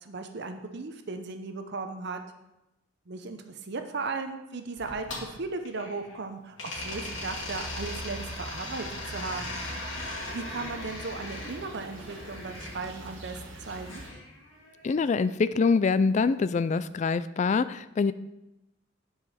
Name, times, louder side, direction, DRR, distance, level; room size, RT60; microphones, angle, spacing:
voice 1, 0.0-2.2 3.1-9.6 10.3-14.0, right 3 dB, 60° right, 7 dB, 0.7 m, -36 dB
sound 1, 4.8-6.2 6.6-12.7 13.8-15.0, left 2 dB, 75° left, 2.1 m, -39 dB
sound 2, 6.7-14.1, right 1 dB, 85° right, 1.9 m, -43 dB
voice 2, 14.8-18.1, left 4 dB, 40° left, 14 dB, 0.3 m, -25 dB
9.3 x 4.9 x 5.6 m, 0.92 s
head